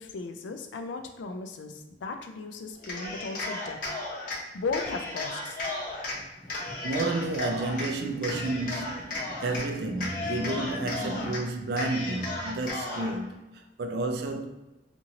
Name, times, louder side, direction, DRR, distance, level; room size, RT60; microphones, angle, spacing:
voice 1, 0.0-3.8 4.5-5.6, left 4 dB, 85° left, 0.4 m, -36 dB
Cheering, 2.8-4.4 4.7-6.2 6.5-7.9 8.2-9.7 9.9-11.4 11.7-13.1, left 2 dB, 50° left, 0.7 m, -34 dB
sound 1, 5.4-11.4, equal, 15° left, 0.4 m, -43 dB
voice 2, 6.8-14.5, right 2 dB, 60° right, 0.4 m, -31 dB
2.8 x 2.5 x 2.8 m
head